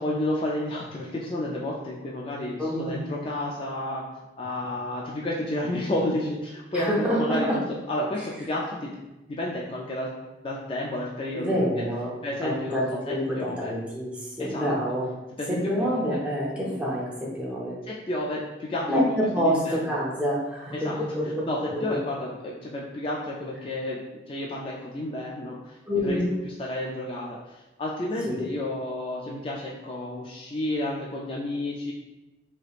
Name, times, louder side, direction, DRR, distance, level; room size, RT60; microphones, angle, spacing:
voice 1, 0.0-4.0 4.4-8.9 9.3-10.1 10.4-11.6 12.2-13.7 14.4-14.7 15.4-16.2 16.6-16.7 17.9-18.9 19.4-20.1 20.7-31.9, left 1 dB, 30° left, -3 dB, 0.3 m, -31 dB
voice 2, 2.6-3.0 6.7-7.2 11.3-12.1 12.4-15.1 15.5-17.7 18.9-21.5 25.9-26.3 28.3-28.4, equal, 5° right, -5 dB, 0.6 m, -27 dB
3.2 x 2.9 x 2.4 m, 1.0 s
head